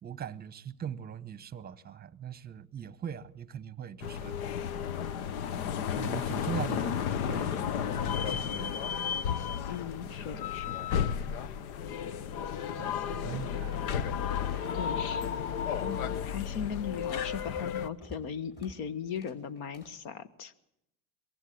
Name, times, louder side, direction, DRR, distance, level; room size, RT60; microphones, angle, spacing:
voice 1, 0.0-4.4 6.0-8.9 9.7-9.8 10.3-10.4 12.8-13.7, right 8 dB, 25° right, 0.9 m, -41 dB
sound 1, 4.0-17.9, left 8 dB, 90° left, 1.0 m, -33 dB
voice 2, 9.7-10.8 13.3-13.4 14.7-15.4 15.8-20.5, left 7 dB, 60° left, 1.5 m, -38 dB
sound 2, 11.9-12.9 13.1-15.4 15.7-20.1, left 1 dB, 25° left, 5.4 m, -52 dB
22.0 x 15.0 x 8.5 m
supercardioid pair, 105°, 41 cm